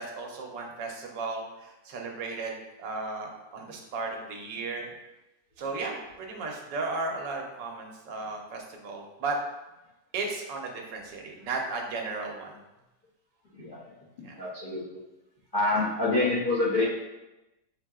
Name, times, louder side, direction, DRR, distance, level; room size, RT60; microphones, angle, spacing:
voice 1, 0.0-4.9 5.6-9.4 10.1-12.6 14.2-14.3, right 3 dB, 80° right, 1 dB, 1.4 m, -35 dB
voice 2, 13.5-15.0 15.5-16.8, left 2 dB, 60° left, -8 dB, 0.5 m, -27 dB
6.1 x 2.7 x 2.3 m, 0.99 s
omnidirectional pair, 1.9 m